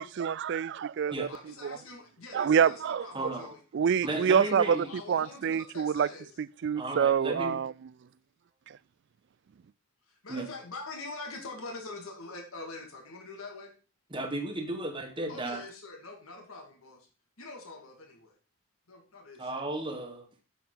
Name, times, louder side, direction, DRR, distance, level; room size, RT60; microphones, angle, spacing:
voice 1, 0.0-1.3 1.6-1.8 2.3-3.3 3.7-6.1 6.4-7.7, right 7 dB, 55° right, 0.3 m, -27 dB
voice 2, 1.3-3.6 4.0-6.3 10.1-13.7 15.3-17.1 17.4-18.3 18.9-19.4, left 3 dB, 75° left, 2.2 m, -44 dB
voice 3, 3.1-3.5 4.0-4.9 6.7-7.6 10.3-10.5 14.1-15.6 19.4-20.2, right 2 dB, 20° right, 1.4 m, -34 dB
8.6 x 7.2 x 3.9 m
head